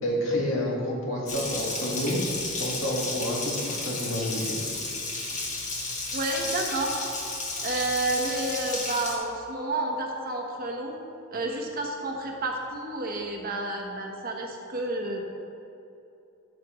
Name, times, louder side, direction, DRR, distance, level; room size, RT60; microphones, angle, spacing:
voice 1, 0.0-2.2 2.6-4.6, left 1 dB, 70° left, -3 dB, 2.0 m, -29 dB
Water tap faucet, 1.3-9.1, left 2 dB, 40° left, 1.4 m, -33 dB
voice 2, 6.1-7.0 7.6-11.0 11.3-15.2, right 2 dB, 45° right, 1 dB, 1.1 m, -30 dB
13.0 x 7.5 x 3.1 m, 2.8 s
head